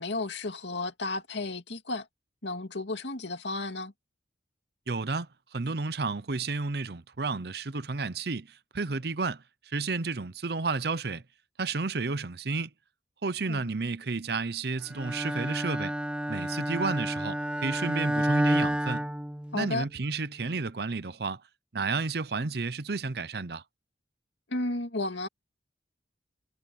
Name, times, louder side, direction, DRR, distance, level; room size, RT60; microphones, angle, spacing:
voice 1, 0.0-2.1 2.4-3.9 13.5-13.7 19.5-19.9 24.5-25.3, left 2 dB, 75° left, 2.3 m, -33 dB
voice 2, 4.9-11.2 11.6-12.7 13.2-15.9 16.3-19.1 19.5-21.4 21.7-23.6, right 4 dB, 55° right, 0.7 m, -32 dB
Bowed string instrument, 14.9-19.9, equal, 5° right, 0.4 m, -30 dB
head